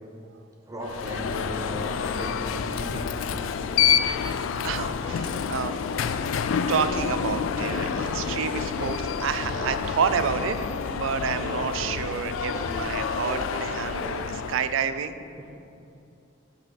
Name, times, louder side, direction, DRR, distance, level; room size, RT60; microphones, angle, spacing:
voice 1, 0.7-3.4 15.4-15.5, equal, 15° right, 0 dB, 0.7 m, -36 dB
Alarm, 0.8-14.8, left 7 dB, 85° left, 0.3 m, -28 dB
voice 2, 4.6-5.8 6.7-15.1, right 6 dB, 80° right, 11 dB, 0.4 m, -29 dB
sound 1, 7.6-9.1 9.5-10.4 11.4-12.8 13.2-14.3, right 2 dB, 55° right, 1.0 m, -39 dB
6.4 x 5.1 x 5.8 m, 2.7 s
head